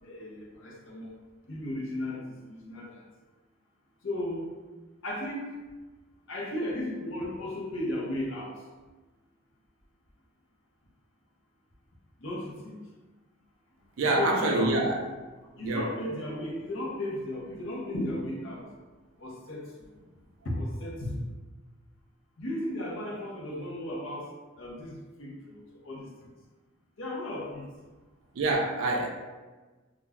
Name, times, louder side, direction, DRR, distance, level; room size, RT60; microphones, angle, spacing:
voice 1, 0.0-1.1 1.5-3.0 4.0-4.5 5.0-5.5 6.3-8.5 12.2-12.8 14.1-15.1 15.6-18.7 19.2-19.7 20.4-21.2 22.4-24.3 24.6-26.1 27.0-27.7, left 1 dB, 65° left, -2 dB, 0.6 m, -35 dB
voice 2, 14.0-15.0 15.6-15.9 28.4-29.1, right 2 dB, 70° right, 0 dB, 0.4 m, -26 dB
2.3 x 2.1 x 3.5 m, 1.3 s
head